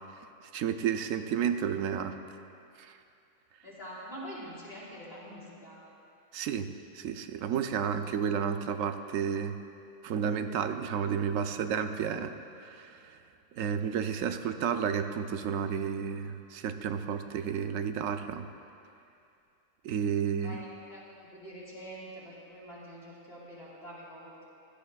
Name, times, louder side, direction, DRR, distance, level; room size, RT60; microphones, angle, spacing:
voice 1, 0.5-2.2 2.8-3.0 6.3-9.5 10.0-12.4 12.6-13.2 13.5-18.5 19.8-20.6, right 7 dB, 85° right, 8 dB, 1.0 m, -31 dB
voice 2, 3.6-5.8 20.4-24.4, equal, 50° left, -8 dB, 3.4 m, -45 dB
16.5 x 12.0 x 2.3 m, 2.6 s
omnidirectional pair, 1.3 m